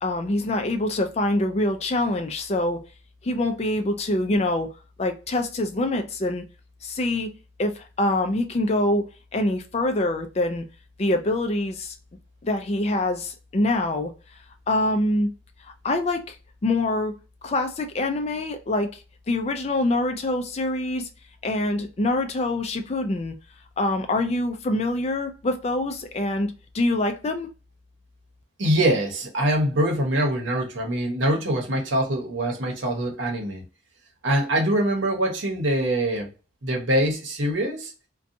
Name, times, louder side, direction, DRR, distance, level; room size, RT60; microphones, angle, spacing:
voice 1, 0.0-2.8 3.2-4.7 5.0-6.4 6.8-7.3 7.6-9.0 9.3-10.7 11.0-12.0 12.4-14.1 14.7-15.3 15.6-16.4 16.6-17.1 17.4-19.0 19.3-21.1 21.4-23.3 23.8-27.5, left 2 dB, 35° left, 0.4 m, -25 dB
voice 2, 28.6-33.6 34.2-36.3 36.6-37.9, right 1 dB, 80° right, 0.9 m, -24 dB
2.7 x 2.2 x 2.5 m
head